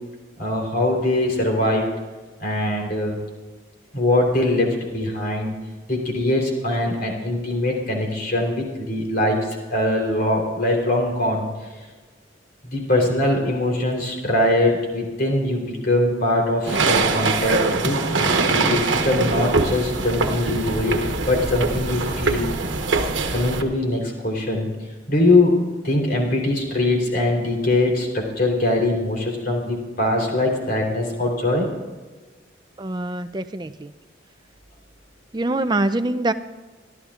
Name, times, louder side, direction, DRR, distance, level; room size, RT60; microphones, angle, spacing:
voice 1, 0.4-1.9 2.4-3.2 3.9-5.5 5.9-9.4 9.7-11.5 12.6-22.5 23.3-24.7 25.1-25.5 25.8-31.7, left 1 dB, 50° left, 0 dB, 3.7 m, -22 dB
sound 1, 16.7-23.6, right 3 dB, 80° right, 1.2 m, -23 dB
voice 2, 32.8-33.9 35.3-36.3, right 2 dB, 25° right, 11 dB, 0.5 m, -24 dB
25.0 x 13.0 x 2.5 m, 1.3 s
head